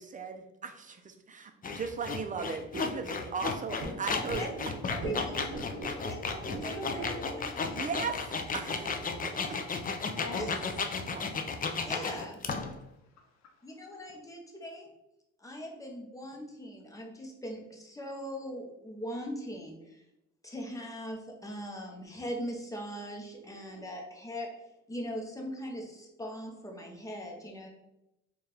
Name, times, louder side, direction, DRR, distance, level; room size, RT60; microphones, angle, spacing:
voice 1, 0.0-4.5 5.2-5.3 7.7-9.6 11.1-11.2, right 5 dB, 25° right, 6 dB, 0.5 m, -37 dB
sound 1, 1.6-12.8, left 4 dB, 30° left, 0.4 m, -34 dB
sound 2, 3.8-8.9, right 2 dB, 90° right, 0.8 m, -42 dB
voice 2, 5.0-5.6 6.0-7.9 10.4-10.5 11.8-12.4 13.6-14.9 15.4-20.0 20.4-24.5 24.9-27.7, equal, 10° left, 1 dB, 0.9 m, -40 dB
voice 3, 9.9-10.6 12.7-14.0, left 4 dB, 60° left, 4 dB, 0.8 m, -47 dB
4.2 x 2.4 x 3.4 m, 0.89 s
cardioid pair, 90°, 30 cm